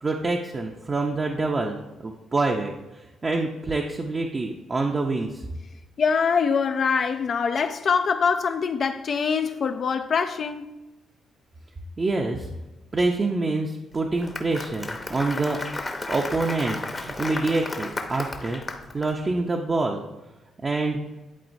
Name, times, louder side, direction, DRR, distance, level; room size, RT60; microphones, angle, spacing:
voice 1, 0.0-5.4 12.0-12.5 12.9-15.6 16.1-18.6 18.9-20.0 20.6-21.0, right 3 dB, 30° right, 0.6 m, -26 dB
voice 2, 6.0-10.7, left 6 dB, 50° left, 0.3 m, -24 dB
Applause, 14.0-19.1, left 2 dB, 25° left, 0.8 m, -33 dB
11.0 x 4.1 x 2.7 m
cardioid pair, 90°, 0 cm